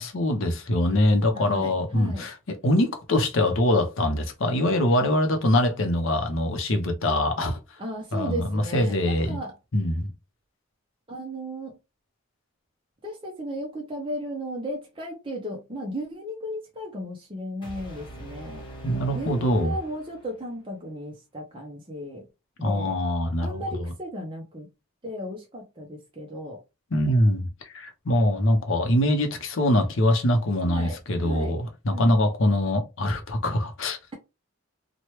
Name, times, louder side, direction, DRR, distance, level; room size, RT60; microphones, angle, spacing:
voice 1, 0.0-7.6 8.1-9.4 9.7-10.1 18.8-19.8 22.6-23.9 26.9-34.0, left 1 dB, 65° left, 0.7 m, -23 dB
voice 2, 1.3-2.3 7.8-9.5 11.1-11.8 13.0-18.6 19.1-22.3 22.6-23.0 23.4-24.7 25.0-26.6 30.6-31.5 31.9-32.2, equal, 25° right, 0.6 m, -35 dB
sound 1, 17.6-20.7, right 1 dB, 25° left, 1.0 m, -42 dB
3.0 x 2.2 x 3.0 m
head